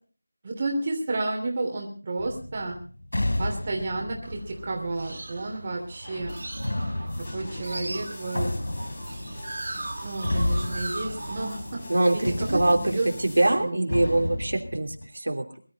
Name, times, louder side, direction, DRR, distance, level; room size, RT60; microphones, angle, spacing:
voice 1, 0.4-2.8 3.4-6.3 7.3-8.5 10.0-11.8 12.1-13.1 13.5-13.8, right 2 dB, 25° right, 0 dB, 3.0 m, -31 dB
sound 1, 2.2-5.6 6.6-11.9 12.2-15.1, left 1 dB, 80° left, 3.7 m, -32 dB
sound 2, 4.2-13.3, right 2 dB, 55° right, 1.6 m, -39 dB
sound 3, 6.0-13.6, left 1 dB, 30° left, 4.4 m, -42 dB
voice 2, 11.9-15.4, right 2 dB, 75° right, 3 dB, 3.0 m, -24 dB
22.5 x 12.5 x 4.1 m, 0.39 s
figure-of-eight pair, 175°, 0 cm